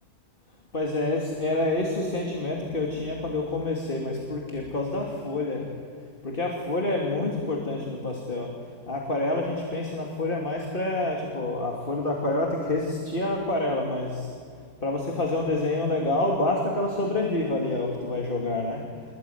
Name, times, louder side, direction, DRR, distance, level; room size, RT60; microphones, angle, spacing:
voice 1, 0.7-5.7 6.2-8.5 8.9-14.3 14.8-18.8, left 2 dB, 25° left, 0 dB, 2.9 m, -27 dB
28.0 x 22.0 x 9.5 m, 2.1 s
omnidirectional pair, 2.4 m